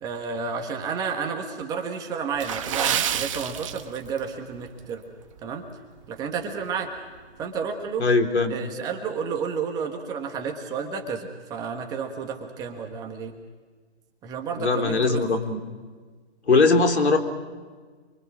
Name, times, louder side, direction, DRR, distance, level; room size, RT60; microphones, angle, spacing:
voice 1, 0.0-5.0 5.4-5.6 6.1-6.9 7.4-8.1 8.5-13.3 14.2-15.4, right 6 dB, 10° right, 3 dB, 1.3 m, -31 dB
Water / Splash splatter, 2.3-4.3 4.6-4.8 5.4-5.6 6.0-6.1, right 9 dB, 30° right, 1.0 m, -28 dB
voice 2, 8.0-8.5 14.6-15.6 16.5-17.2, left 3 dB, 85° left, 4 dB, 3.7 m, -20 dB
28.5 x 23.5 x 6.2 m, 1.4 s
hypercardioid pair, 155°, 33 cm